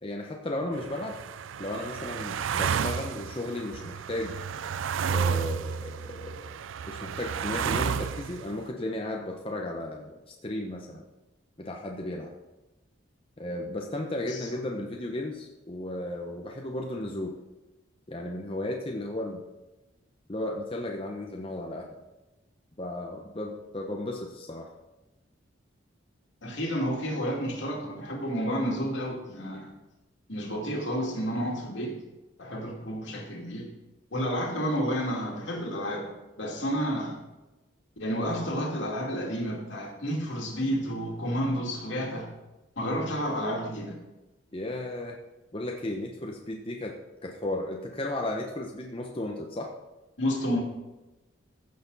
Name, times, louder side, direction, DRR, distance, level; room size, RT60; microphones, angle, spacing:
voice 1, 0.0-1.1 1.6-4.3 5.1-6.5 6.9-11.0 11.6-12.3 13.4-17.3 18.1-19.4 20.3-22.0 22.8-24.7 44.5-45.2 45.5-46.9 47.2-49.7, left 1 dB, 30° left, 0 dB, 0.8 m, -34 dB
sound 1, 0.7-8.6, right 7 dB, 85° right, 0.4 m, -32 dB
voice 2, 26.4-29.7 30.3-32.0 32.4-33.7 34.1-36.1 36.4-37.2 38.0-42.3 42.8-44.0 50.2-50.6, equal, 70° left, -1 dB, 2.5 m, -30 dB
14.5 x 6.8 x 4.0 m, 1.1 s
head